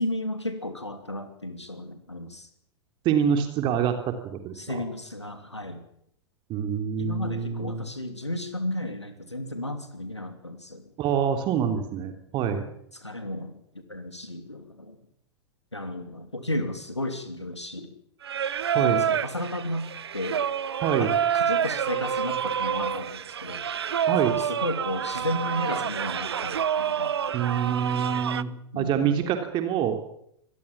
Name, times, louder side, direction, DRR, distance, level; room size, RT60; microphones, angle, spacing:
voice 1, 0.0-2.5 4.5-5.8 7.0-10.9 12.9-13.6 13.9-15.0 15.7-17.9 18.8-19.9 20.1-20.5 21.0-23.6 24.1-27.4 28.7-29.3, left 1 dB, 85° left, 9 dB, 2.6 m, -33 dB
voice 2, 3.0-4.8 6.5-7.8 11.0-12.7 18.7-19.0 20.8-21.1 24.1-24.4 27.3-30.0, right 8 dB, 35° right, 7 dB, 3.2 m, -26 dB
Singing, 18.2-28.4, right 8 dB, 65° right, 0.9 m, -28 dB
25.5 x 19.5 x 7.3 m, 0.71 s
figure-of-eight pair, 95°, 14 cm